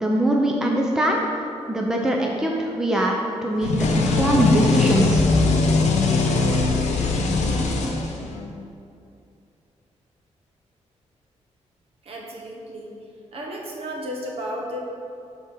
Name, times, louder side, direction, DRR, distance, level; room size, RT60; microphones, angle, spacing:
voice 1, 0.0-1.2 1.7-5.2, right 1 dB, 5° right, -1 dB, 0.5 m, -22 dB
sound 1, 3.6-8.5, left 3 dB, 85° left, 0.9 m, -21 dB
voice 2, 12.0-13.0 13.3-14.8, equal, 55° right, -1 dB, 1.2 m, -33 dB
7.0 x 4.4 x 5.5 m, 2.5 s
wide cardioid pair, 160°, 12 cm